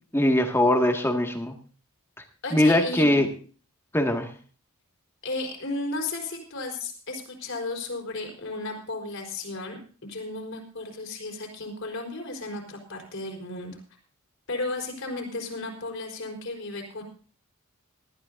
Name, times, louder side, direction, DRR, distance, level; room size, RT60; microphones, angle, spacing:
voice 1, 0.1-1.5 2.5-3.3 3.9-4.3, left 1 dB, 10° left, 3 dB, 2.0 m, -21 dB
voice 2, 2.4-3.2 5.2-13.8 14.5-17.0, left 2 dB, 60° left, 2 dB, 4.6 m, -34 dB
20.0 x 13.5 x 2.7 m, 0.40 s
head